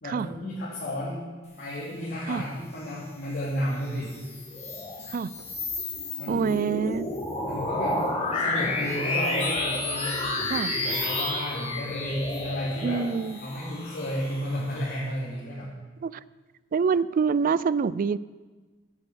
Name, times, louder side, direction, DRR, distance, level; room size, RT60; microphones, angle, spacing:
voice 1, 0.0-1.2 1.6-4.1 6.2-6.5 7.5-8.0 8.3-10.3 10.7-13.0 13.4-15.7, equal, 55° left, -8 dB, 3.1 m, -32 dB
sound 1, 3.9-14.8, left 2 dB, 35° left, 2.2 m, -31 dB
voice 2, 6.3-7.1 10.5-10.7 12.8-13.4 16.0-16.2 16.7-18.2, right 5 dB, 45° right, 19 dB, 0.3 m, -26 dB
10.5 x 7.7 x 8.1 m, 1.3 s
head